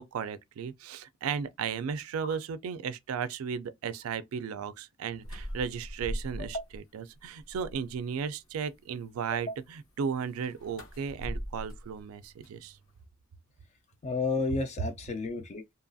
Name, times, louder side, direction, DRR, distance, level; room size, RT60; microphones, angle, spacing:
voice 1, 0.0-12.8, right 6 dB, 90° right, 0.3 m, -35 dB
sound 1, 5.2-6.8 7.2-8.0 10.2-13.1, equal, 65° left, 0.8 m, -41 dB
voice 2, 14.0-15.6, left 3 dB, 35° left, 0.3 m, -32 dB
2.8 x 2.3 x 2.5 m
head